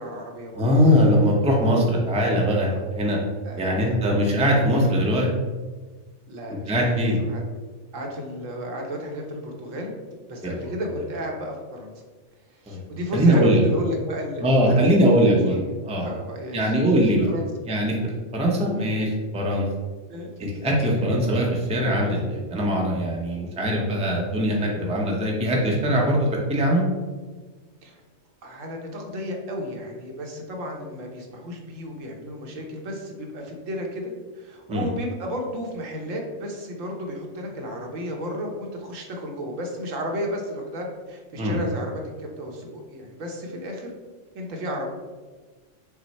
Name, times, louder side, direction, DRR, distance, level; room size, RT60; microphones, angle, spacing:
voice 1, 0.0-0.6 2.6-2.8 3.4-3.9 4.8-5.1 6.3-7.4 7.9-9.9 10.3-11.9 12.5-16.7 17.3-17.5 20.1-20.5 27.8-28.0 28.4-43.9 44.3-44.9, equal, 75° right, 1 dB, 1.2 m, -33 dB
voice 2, 0.5-3.2 3.6-5.3 6.5-7.2 10.4-10.6 12.7-12.8 13.1-13.6 14.4-15.6 15.9-16.1 16.5-17.3 17.7-19.7 20.6-26.8 34.7-34.9 41.4-41.6, equal, 5° right, -2 dB, 0.5 m, -21 dB
6.1 x 2.1 x 4.1 m, 1.3 s
omnidirectional pair, 1.3 m